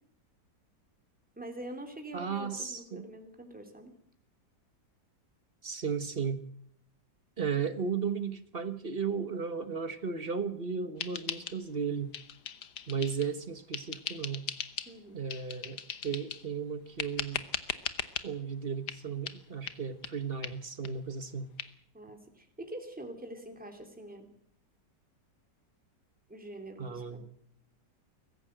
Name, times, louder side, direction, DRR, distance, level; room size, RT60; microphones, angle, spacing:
voice 1, 1.4-3.9 14.8-15.2 21.9-24.3 26.3-27.2, right 1 dB, 5° right, 4 dB, 2.8 m, -45 dB
voice 2, 2.1-3.1 5.6-6.4 7.4-12.1 12.9-14.5 15.1-17.5 18.2-21.5 26.8-27.3, right 6 dB, 35° right, 11 dB, 1.3 m, -35 dB
sound 1, 11.0-11.8 12.1-13.3 13.7-14.9 15.3-16.5 17.0-18.3 18.9-19.0 19.3-19.4 19.7-19.8 20.0-20.1 20.4-20.5 20.8-20.9 21.2-21.3 21.6-21.7, left 8 dB, 70° left, 1.7 m, -38 dB
22.5 x 15.0 x 7.9 m, 0.64 s
omnidirectional pair, 1.9 m